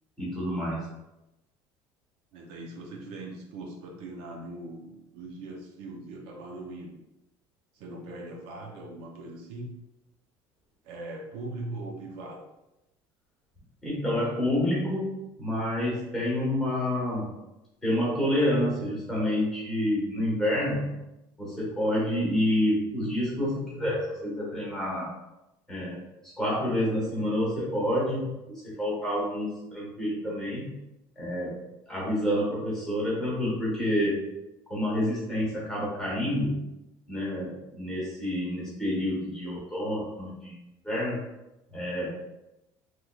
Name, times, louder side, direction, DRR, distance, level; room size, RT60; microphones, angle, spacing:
voice 1, 0.2-0.8 13.8-17.3 17.8-21.0 21.4-25.1 25.7-26.0 26.4-30.7 31.2-31.6 31.9-34.2 34.7-36.6 37.1-40.6 40.8-41.2 41.7-42.1, left 1 dB, 5° left, -7 dB, 1.1 m, -28 dB
voice 2, 2.3-7.0 7.7-9.7 10.8-12.5, right 2 dB, 65° right, 1 dB, 0.5 m, -40 dB
3.4 x 3.1 x 2.3 m, 0.94 s
cardioid pair, 180°, 10 cm